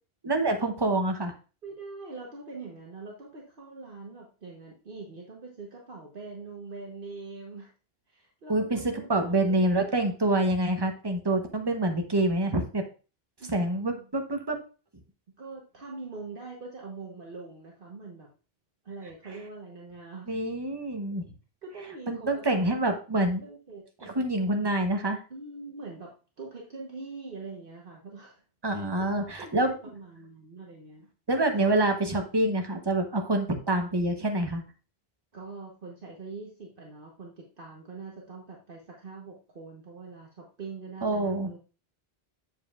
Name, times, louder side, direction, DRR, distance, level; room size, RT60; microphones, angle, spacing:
voice 1, 0.2-1.3 8.5-12.8 13.5-14.6 20.3-21.2 22.1-23.4 24.0-25.2 28.6-29.7 31.3-34.6 41.0-41.5, right 1 dB, 25° right, 5 dB, 0.9 m, -26 dB
voice 2, 1.6-7.7 8.1-9.9 13.4-14.1 15.4-18.3 18.8-20.3 21.6-22.8 23.4-24.2 25.3-28.4 28.7-31.1 31.6-31.8 35.3-41.6, right 3 dB, 60° right, -1 dB, 1.2 m, -43 dB
7.4 x 7.2 x 2.4 m, 0.34 s
omnidirectional pair, 1.1 m